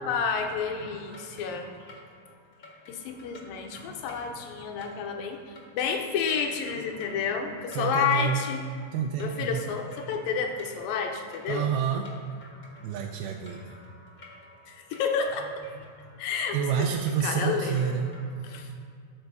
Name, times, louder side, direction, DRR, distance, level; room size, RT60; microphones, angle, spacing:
voice 1, 0.0-1.7 2.9-8.7 9.2-11.7 14.7-15.5 16.2-18.0 18.4-18.7, left 6 dB, 80° left, 4 dB, 2.5 m, -30 dB
sound 1, 0.8-18.7, left 1 dB, 60° left, 0.9 m, -51 dB
voice 2, 7.7-8.4 8.9-9.6 11.5-12.1 12.8-13.6 16.5-18.1, right 7 dB, 90° right, 1 dB, 2.5 m, -28 dB
12.5 x 4.6 x 6.7 m, 2.3 s
omnidirectional pair, 4.3 m